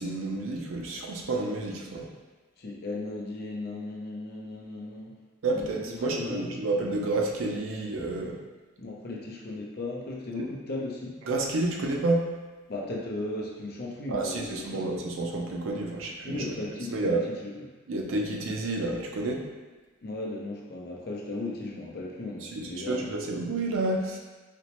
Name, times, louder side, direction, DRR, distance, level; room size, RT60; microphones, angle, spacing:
voice 1, 0.0-2.1 5.4-8.4 11.3-12.3 14.1-16.4 16.9-17.2 17.9-19.4 22.5-24.2, right 2 dB, 85° right, 0 dB, 0.5 m, -29 dB
voice 2, 2.6-5.1 5.5-6.6 8.8-11.2 12.7-14.9 16.2-17.7 20.0-23.3, left 2 dB, 50° left, -2 dB, 0.6 m, -36 dB
4.2 x 2.1 x 2.9 m, 1.3 s
head